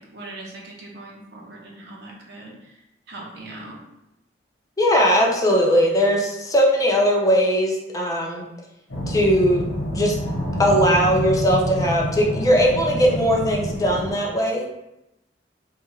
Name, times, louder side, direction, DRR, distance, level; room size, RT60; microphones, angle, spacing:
voice 1, 0.0-2.8 3.1-3.8, right 2 dB, 65° right, -3 dB, 0.7 m, -40 dB
voice 2, 4.8-8.4 9.1-9.6 9.9-10.2 10.6-14.6, equal, 20° left, -1 dB, 0.4 m, -19 dB
sound 1, 8.9-14.1, equal, 80° left, 1.0 m, -27 dB
2.6 x 2.3 x 3.0 m, 0.88 s
head